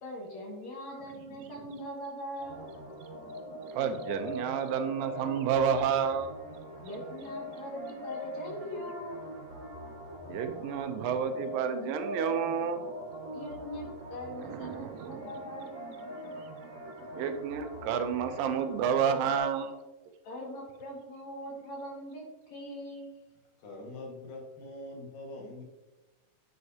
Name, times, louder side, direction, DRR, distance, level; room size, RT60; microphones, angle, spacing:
voice 1, 0.0-2.7 6.8-9.2 13.3-16.0 20.2-23.1, equal, 60° left, -1 dB, 3.0 m, -41 dB
sound 1, 2.4-19.4, equal, 50° right, 2.9 m, -43 dB
voice 2, 3.7-6.3 10.3-12.9 14.4-15.3 16.1-16.5 17.0-19.7, right 7 dB, 85° right, 7 dB, 2.5 m, -30 dB
voice 3, 23.6-25.6, left 2 dB, 80° left, -1 dB, 3.4 m, -43 dB
9.8 x 7.7 x 2.8 m, 1.1 s
omnidirectional pair, 3.9 m